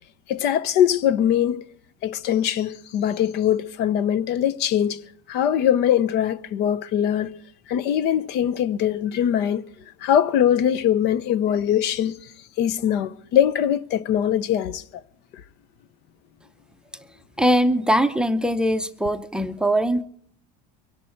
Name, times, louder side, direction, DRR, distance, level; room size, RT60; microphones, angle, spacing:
voice 1, 0.3-1.6 2.0-5.0 5.3-7.3 7.7-9.6 10.0-12.1 12.6-14.8, left 10 dB, 55° left, 0.7 m, -22 dB
voice 2, 17.4-20.0, equal, 5° right, 0.6 m, -21 dB
23.5 x 10.5 x 4.5 m
supercardioid pair, 110°, 20 cm